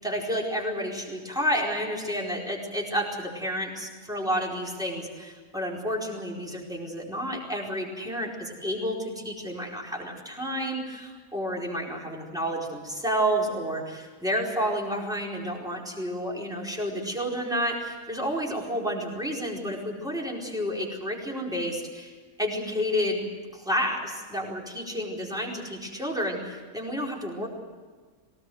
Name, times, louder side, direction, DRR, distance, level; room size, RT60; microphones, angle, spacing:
voice 1, 0.0-27.5, equal, 5° right, -2 dB, 4.6 m, -30 dB
22.5 x 19.0 x 7.9 m, 1.5 s
omnidirectional pair, 1.3 m